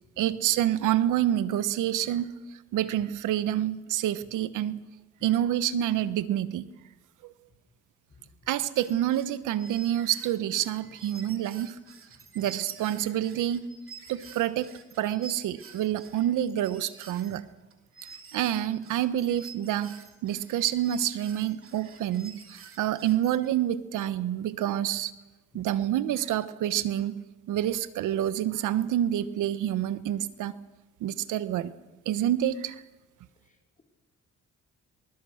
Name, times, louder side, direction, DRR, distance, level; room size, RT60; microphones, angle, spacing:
voice 1, 0.2-2.3 2.7-4.8 5.2-6.7 7.2-7.3 8.5-11.8 12.3-13.7 14.1-17.4 18.0-25.1 25.5-27.2 27.5-30.5 31.0-31.7 32.0-32.8, right 12 dB, 85° right, 14 dB, 1.2 m, -28 dB
voice 2, 8.1-8.5 11.2-11.3 12.4-12.5 17.3-17.4 25.6-25.7 33.4-33.8, left 3 dB, 25° left, 1 dB, 4.5 m, -58 dB
sound 1, 8.8-23.5, right 5 dB, 45° right, 3.1 m, -49 dB
24.5 x 20.5 x 6.5 m, 1.1 s
cardioid pair, 90°, 30 cm